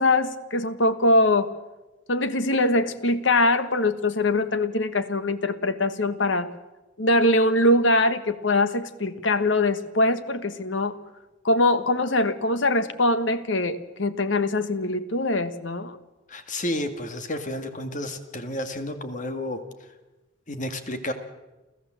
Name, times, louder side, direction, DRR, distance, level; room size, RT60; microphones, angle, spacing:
voice 1, 0.0-1.5 2.1-6.5 7.0-11.0 11.4-16.0, left 2 dB, 80° left, 12 dB, 1.4 m, -22 dB
voice 2, 16.3-19.9 20.5-21.1, left 1 dB, 40° left, 8 dB, 1.9 m, -31 dB
29.0 x 14.5 x 7.6 m, 1.1 s
head